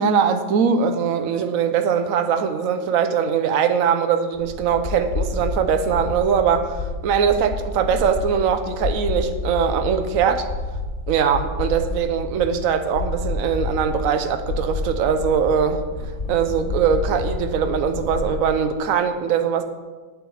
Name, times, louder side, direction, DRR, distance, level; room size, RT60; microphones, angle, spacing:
voice 1, 0.0-10.5 11.1-15.8 16.3-19.6, right 7 dB, 55° right, 8 dB, 1.0 m, -21 dB
sound 1, 4.3-18.4, left 3 dB, 30° left, 2.2 m, -29 dB
8.9 x 8.1 x 7.2 m, 1.3 s
omnidirectional pair, 2.3 m